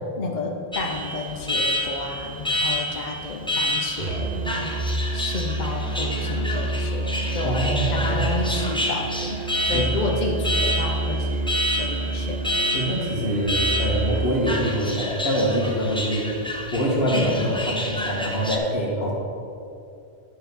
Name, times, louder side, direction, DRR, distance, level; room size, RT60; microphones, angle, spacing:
voice 1, 0.2-4.8 5.1-7.5 7.9-12.5 17.1-17.4, left 3 dB, 50° left, 1 dB, 0.8 m, -31 dB
Alarm, 0.7-18.6, left 1 dB, 5° left, 0.6 m, -29 dB
Musical instrument, 4.0-14.4, right 2 dB, 80° right, 1.0 m, -28 dB
voice 2, 7.4-8.3 9.7-9.9 12.7-16.4 16.7-19.1, equal, 85° left, -4 dB, 2.0 m, -24 dB
10.0 x 4.1 x 5.4 m, 2.6 s
omnidirectional pair, 1.0 m